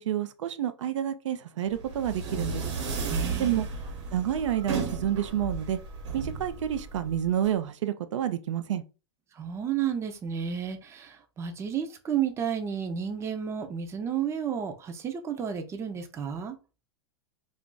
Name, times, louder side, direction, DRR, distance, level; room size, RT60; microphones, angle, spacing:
voice 1, 0.0-2.6 3.4-3.7 4.1-5.8 6.1-8.8, right 10 dB, 85° right, 0.4 m, -29 dB
sound 1, 1.7-7.5, right 4 dB, 70° right, 1.1 m, -34 dB
voice 2, 3.1-3.6 9.3-16.6, right 8 dB, 20° right, 0.5 m, -32 dB
2.5 x 2.3 x 3.7 m
hypercardioid pair, 130°, 15 cm